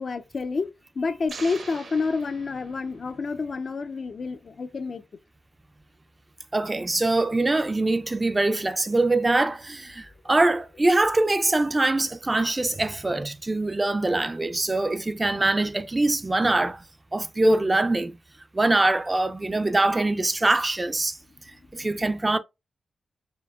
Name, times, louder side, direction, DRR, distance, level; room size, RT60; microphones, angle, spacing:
voice 1, 0.0-5.0 10.3-10.5 21.8-22.0, left 4 dB, 55° left, 0.4 m, -29 dB
sound 1, 1.3-3.2, right 4 dB, 70° right, 1.0 m, -42 dB
voice 2, 6.5-16.8 17.1-18.1 18.5-21.2 21.7-22.4, right 2 dB, 25° right, 0.4 m, -23 dB
4.5 x 3.3 x 2.3 m
cardioid pair, 85°, 0 cm